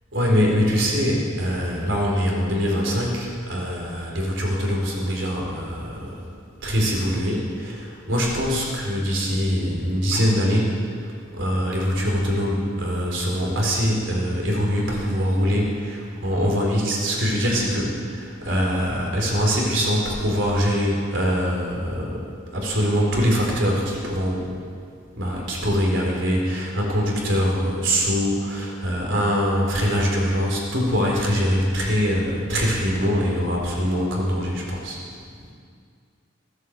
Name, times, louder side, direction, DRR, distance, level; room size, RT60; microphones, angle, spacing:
voice 1, 0.1-6.3 6.6-11.1 11.3-22.2 22.5-24.5 25.2-35.0, equal, 65° right, -1 dB, 3.9 m, -23 dB
15.0 x 11.0 x 8.0 m, 2.2 s
head